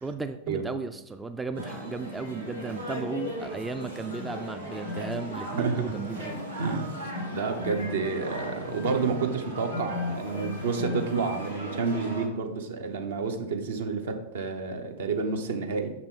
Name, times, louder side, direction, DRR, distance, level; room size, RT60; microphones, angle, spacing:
voice 1, 0.0-6.5, right 4 dB, 10° right, 9 dB, 0.3 m, -35 dB
sound 1, 1.5-12.3, left 1 dB, 85° right, 1.5 m, -36 dB
voice 2, 6.6-15.9, right 5 dB, 60° right, 6 dB, 0.8 m, -30 dB
6.5 x 5.9 x 3.7 m, 0.92 s
figure-of-eight pair, 90°, 0 cm